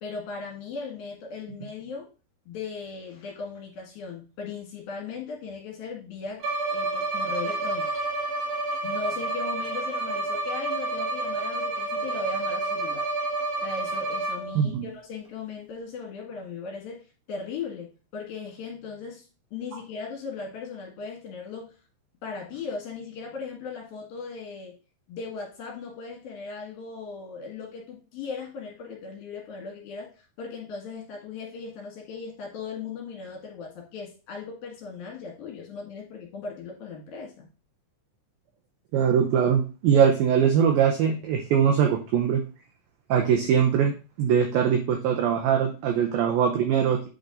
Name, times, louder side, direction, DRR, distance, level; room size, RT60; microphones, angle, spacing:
voice 1, 0.0-2.1 2.5-7.9 8.8-13.1 13.6-19.3 19.5-21.8 22.2-24.8 25.1-37.5, left 4 dB, 60° left, -1 dB, 3.3 m, -38 dB
Bowed string instrument, 6.4-14.7, right 2 dB, 65° right, 1.6 m, -29 dB
voice 2, 14.6-14.9 38.9-42.4 43.1-47.1, right 8 dB, 85° right, 3 dB, 2.1 m, -22 dB
8.6 x 4.0 x 3.8 m, 0.33 s
omnidirectional pair, 5.2 m